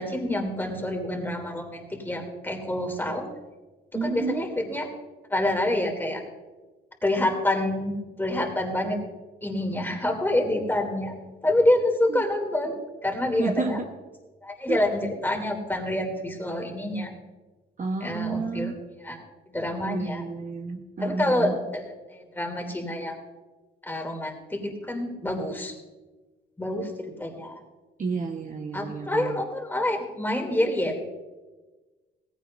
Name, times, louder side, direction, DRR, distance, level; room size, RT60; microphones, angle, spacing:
voice 1, 0.0-3.2 3.9-4.9 5.3-6.2 7.0-9.0 9.4-11.1 11.4-13.8 14.4-17.1 18.0-18.7 19.0-19.2 19.5-20.2 21.0-23.2 23.8-25.7 26.6-27.6 28.7-31.0, left 1 dB, 10° left, 2 dB, 2.8 m, -27 dB
voice 2, 3.9-4.4 12.1-12.3 13.4-13.9 14.7-14.8 17.8-18.8 19.8-21.6 28.0-29.4, right 4 dB, 40° right, 2 dB, 1.2 m, -31 dB
17.0 x 15.5 x 2.6 m, 1.2 s
cardioid pair, 90°, 20 cm